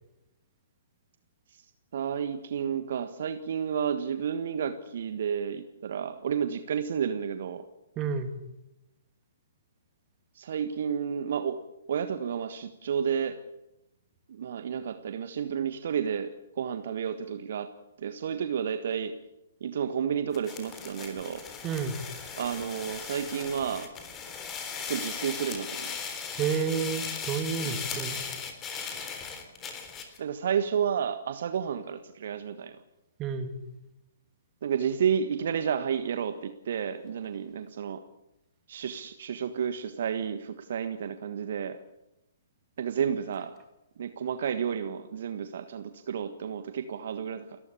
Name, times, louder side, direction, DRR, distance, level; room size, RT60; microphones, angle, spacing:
voice 1, 1.9-7.6 10.3-11.6 11.9-13.4 14.3-17.7 18.0-19.2 19.6-21.4 22.4-23.9 24.9-26.0 27.6-27.8 30.2-32.8 34.6-38.0 38.7-41.8 42.8-43.5 44.0-47.6, right 7 dB, 50° right, 10 dB, 1.5 m, -31 dB
voice 2, 8.0-8.3 21.6-22.0 26.4-28.3 33.2-33.5, right 6 dB, 20° right, 7 dB, 2.7 m, -30 dB
sound 1, 20.3-30.2, left 6 dB, 20° left, 3.7 m, -38 dB
30.0 x 14.5 x 8.5 m, 0.92 s
figure-of-eight pair, 125°, 0 cm